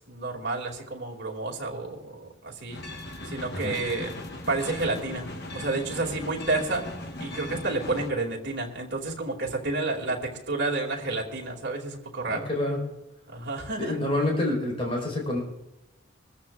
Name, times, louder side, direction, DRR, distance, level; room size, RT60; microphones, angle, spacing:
voice 1, 0.1-2.9 3.2-4.1 4.5-6.8 7.2-12.5 13.3-14.0, right 3 dB, 60° right, -1 dB, 2.5 m, -30 dB
sound 1, 2.7-8.1, left 1 dB, 55° left, 1.1 m, -38 dB
voice 2, 12.3-12.8 13.8-15.4, left 1 dB, 30° left, -1 dB, 4.7 m, -27 dB
23.5 x 14.5 x 2.5 m, 0.97 s
head